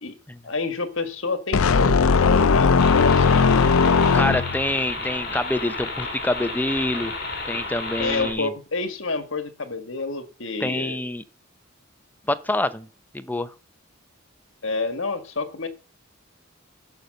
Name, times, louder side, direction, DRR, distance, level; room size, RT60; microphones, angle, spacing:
voice 1, 0.4-3.5 8.0-11.0 14.6-15.7, left 3 dB, 65° left, 1.8 m, -29 dB
sound 1, 1.5-4.7, left 5 dB, 85° left, 0.5 m, -18 dB
sound 2, 2.8-8.3, left 2 dB, 50° left, 4.6 m, -32 dB
voice 2, 4.1-7.1 7.5-8.5 10.6-11.2 12.3-12.9 13.1-13.5, left 1 dB, 10° left, 0.6 m, -26 dB
11.5 x 6.6 x 6.5 m
head